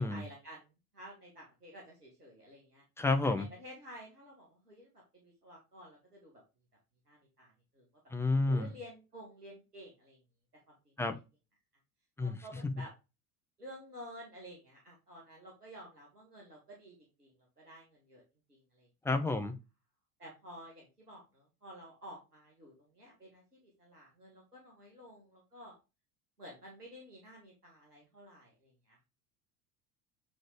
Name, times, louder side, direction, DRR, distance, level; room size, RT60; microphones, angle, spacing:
voice 1, 0.0-2.8 3.2-6.4 7.1-7.9 8.5-10.2 10.7-10.8 12.2-12.9 13.6-18.2 18.5-18.9 19.3-19.4 20.2-25.8 26.4-29.0, equal, 85° right, -2 dB, 2.1 m, -52 dB
voice 2, 3.0-3.5 8.1-8.7 11.0-11.1 12.2-12.4 19.0-19.6, left 3 dB, 5° left, 5 dB, 0.9 m, -30 dB
8.5 x 3.9 x 3.3 m, 0.27 s
figure-of-eight pair, 70°, 45 cm